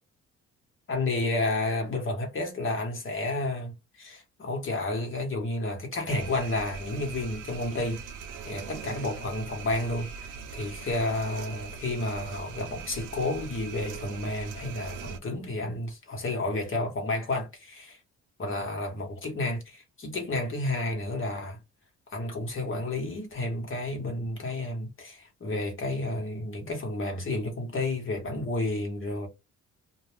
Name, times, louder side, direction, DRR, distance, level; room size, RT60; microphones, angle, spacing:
voice 1, 0.9-8.0 8.4-18.0 18.4-21.6 22.1-29.3, left 2 dB, 40° left, 1.2 m, -31 dB
sound 1, 6.1-15.2, right 6 dB, 80° right, 0.6 m, -41 dB
2.3 x 2.3 x 3.3 m
cardioid pair, 90°, 30 cm